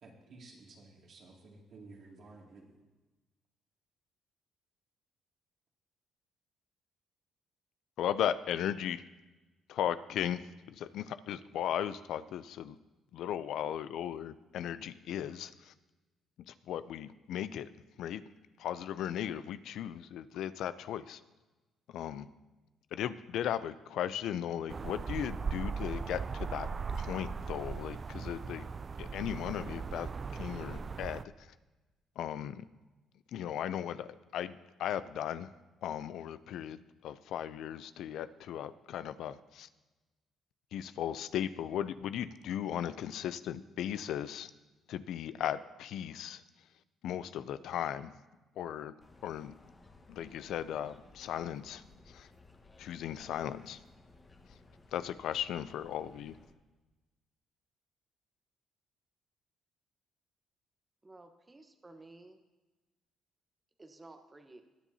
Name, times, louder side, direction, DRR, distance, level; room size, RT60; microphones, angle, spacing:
voice 1, 0.0-2.8, right 3 dB, 60° right, -1 dB, 2.4 m, -54 dB
voice 2, 8.0-9.0 9.7-12.8 13.1-15.7 16.5-17.7 18.0-18.2 18.6-21.2 21.9-22.3 22.9-26.7 26.9-28.7 29.0-31.5 32.2-32.7 33.3-35.5 35.8-39.7 40.7-44.5 44.9-46.4 47.0-48.1 48.6-48.9 49.2-49.5 50.1-52.3 52.8-53.8 54.9-56.4, left 10 dB, 75° left, 14 dB, 0.4 m, -37 dB
sound 1, 24.7-31.2, right 5 dB, 40° right, 0.3 m, -38 dB
sound 2, 49.0-56.5, left 3 dB, 25° left, 1.4 m, -59 dB
voice 3, 61.0-62.4 63.8-64.6, right 2 dB, 25° right, 6 dB, 1.0 m, -54 dB
20.5 x 7.2 x 2.8 m, 1.1 s
supercardioid pair, 70°, 0 cm